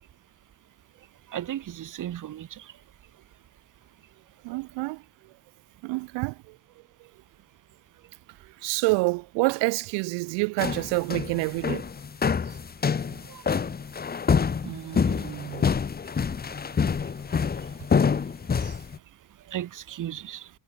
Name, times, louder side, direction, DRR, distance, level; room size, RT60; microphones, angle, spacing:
voice 1, 1.3-2.7 4.5-4.6 13.3-13.4 14.6-15.7 18.6-18.8 19.5-20.5, right 11 dB, 45° right, 1.2 m, -36 dB
voice 2, 4.4-5.0 5.8-6.6 8.6-11.9, right 27 dB, 90° right, 0.8 m, -27 dB
sound 1, 10.6-19.0, left 6 dB, 20° left, 0.9 m, -26 dB
cardioid pair, 105°, 42 cm